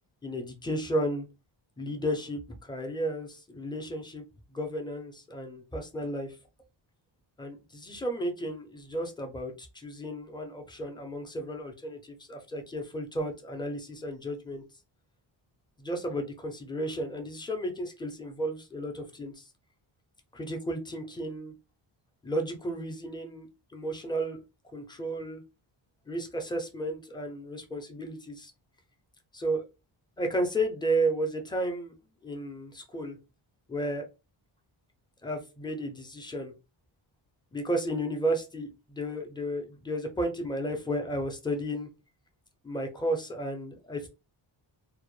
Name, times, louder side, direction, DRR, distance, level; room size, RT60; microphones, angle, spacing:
voice 1, 0.2-1.3 1.8-4.2 4.5-6.3 7.4-14.6 15.8-19.4 20.3-21.5 22.2-24.4 24.7-25.4 26.1-28.5 29.3-29.6 30.2-31.9 32.2-33.2 33.7-34.1 35.2-36.5 37.5-41.9 42.6-44.1, right 1 dB, 10° left, 3 dB, 0.5 m, -33 dB
2.1 x 2.0 x 3.0 m, 0.28 s
wide cardioid pair, 105°, 48 cm